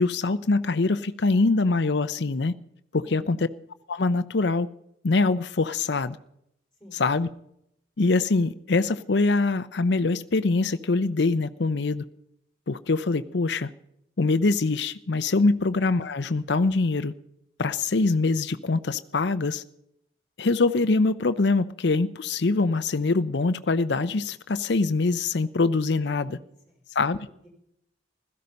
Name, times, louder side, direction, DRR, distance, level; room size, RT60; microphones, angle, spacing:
voice 1, 0.0-2.5 2.9-3.4 3.9-4.7 5.0-6.2 7.0-7.3 8.0-12.0 12.7-13.7 14.2-17.1 17.6-19.6 20.4-26.4 26.9-27.2, left 3 dB, 70° left, 11 dB, 0.6 m, -24 dB
voice 2, 3.0-3.4 6.8-7.0 26.2-26.4 26.7-26.8 27.3-27.5, left 1 dB, ahead, 1 dB, 5.1 m, -51 dB
16.5 x 13.5 x 5.3 m, 0.73 s
head